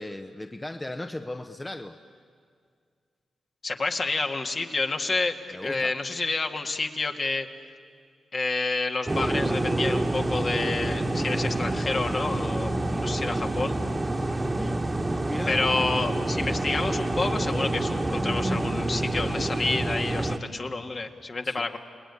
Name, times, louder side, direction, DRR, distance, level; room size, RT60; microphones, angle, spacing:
voice 1, 0.0-2.0 5.5-5.9 14.4-14.8 15.3-15.6 21.4-21.6, left 1 dB, 20° left, 6 dB, 1.0 m, -36 dB
voice 2, 3.6-7.5 8.3-13.8 15.5-21.8, left 3 dB, 45° left, 4 dB, 2.0 m, -29 dB
sound 1, 9.1-20.4, right 1 dB, 20° right, 1.5 m, -27 dB
29.0 x 19.5 x 9.9 m, 2.1 s
cardioid pair, 60°, 0 cm